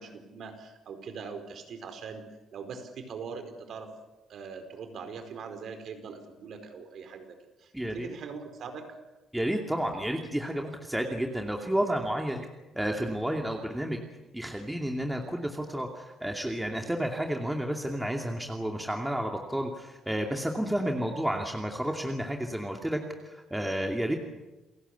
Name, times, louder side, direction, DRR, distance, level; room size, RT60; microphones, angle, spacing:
voice 1, 0.0-2.2 2.5-3.9 4.3-8.9, right 5 dB, 65° right, 7 dB, 4.7 m, -42 dB
voice 2, 7.7-8.1 9.3-12.5 12.7-14.0 14.3-24.2, right 1 dB, 5° right, 2 dB, 2.5 m, -31 dB
28.5 x 16.5 x 8.4 m, 1.1 s
cardioid pair, 90°, 0 cm